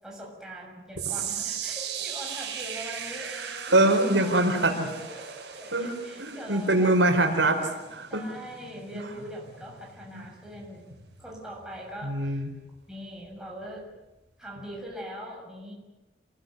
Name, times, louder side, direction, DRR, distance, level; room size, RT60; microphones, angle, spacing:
voice 1, 0.0-7.0 8.1-10.9 11.2-12.4 12.9-13.9 14.4-15.7, equal, 5° right, -2 dB, 7.0 m, -42 dB
sound 1, 1.0-13.3 13.6-14.0 14.6-14.7, right 8 dB, 65° right, 6.5 m, -39 dB
voice 2, 3.7-4.9 5.7-5.9 6.2-8.3 8.9-9.1 10.1-10.2 12.0-12.5, right 2 dB, 85° right, 4 dB, 4.6 m, -23 dB
27.5 x 20.0 x 9.4 m, 1.0 s
head